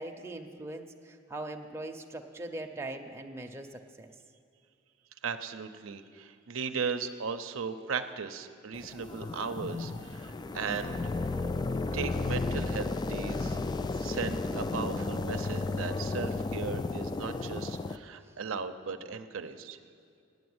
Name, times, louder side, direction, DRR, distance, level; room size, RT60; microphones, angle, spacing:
voice 1, 0.0-4.1, right 2 dB, 15° right, 2 dB, 0.6 m, -41 dB
voice 2, 5.2-11.1 11.9-13.6 14.0-19.8, right 5 dB, 85° right, 8 dB, 0.6 m, -37 dB
sound 1, 8.7-18.0, left 3 dB, 20° left, 0.3 m, -33 dB
9.4 x 7.8 x 9.4 m, 2.4 s
head